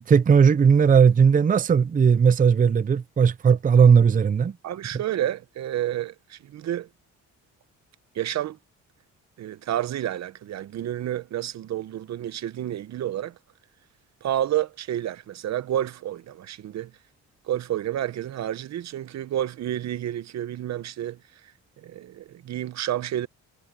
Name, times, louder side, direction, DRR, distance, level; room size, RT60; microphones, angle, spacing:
voice 1, 0.1-4.5, right 6 dB, 25° right, 0.6 m, -17 dB
voice 2, 4.6-6.9 8.1-8.6 9.4-13.3 14.2-16.9 17.5-21.2 21.8-23.3, right 12 dB, 65° right, 0.9 m, -30 dB
cardioid pair, 90°, 30 cm